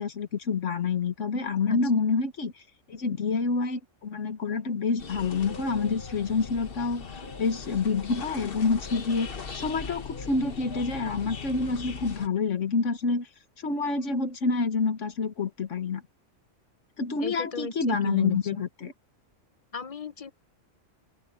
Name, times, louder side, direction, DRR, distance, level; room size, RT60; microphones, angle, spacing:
voice 1, 0.0-2.5 2.9-7.1 7.4-9.3 9.5-13.3 13.6-16.0 17.0-18.9, left 4 dB, 65° left, 1.7 m, -27 dB
sound 1, 5.0-12.3, left 5 dB, 45° left, 1.3 m, -39 dB
voice 2, 17.2-18.4 19.7-20.3, left 4 dB, 30° left, 0.8 m, -34 dB
open air
omnidirectional pair, 1.4 m